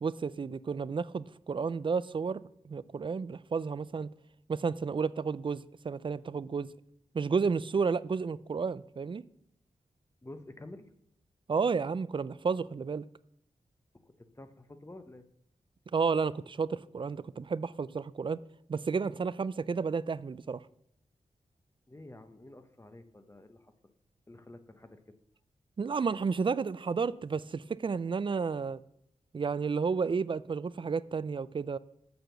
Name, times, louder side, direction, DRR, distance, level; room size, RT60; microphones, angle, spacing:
voice 1, 0.0-4.1 4.5-6.7 7.1-9.2 11.5-13.0 15.9-18.4 18.7-20.6 25.8-28.8 29.3-31.8, right 5 dB, 40° right, 0.4 m, -31 dB
voice 2, 10.2-10.9 14.0-15.2 21.9-23.9 24.3-25.2, left 1 dB, 20° left, 0.8 m, -50 dB
6.9 x 5.9 x 6.7 m
cardioid pair, 60°, 14 cm